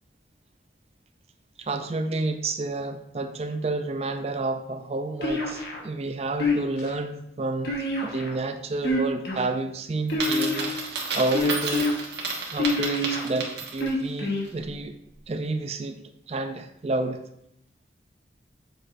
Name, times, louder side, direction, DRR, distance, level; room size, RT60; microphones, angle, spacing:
voice 1, 1.6-11.9 12.5-14.9 15.3-16.0 16.3-17.2, right 2 dB, 35° right, 8 dB, 0.4 m, -30 dB
sound 1, 5.2-5.8 6.4-6.9 7.6-8.4 8.8-9.5 10.1-10.8 11.3-11.9 12.6-13.2 13.8-14.4, left 2 dB, 65° left, 1.3 m, -26 dB
Coin (dropping), 10.1-14.0, right 4 dB, 80° right, 1.4 m, -31 dB
7.8 x 5.8 x 2.6 m, 0.76 s
head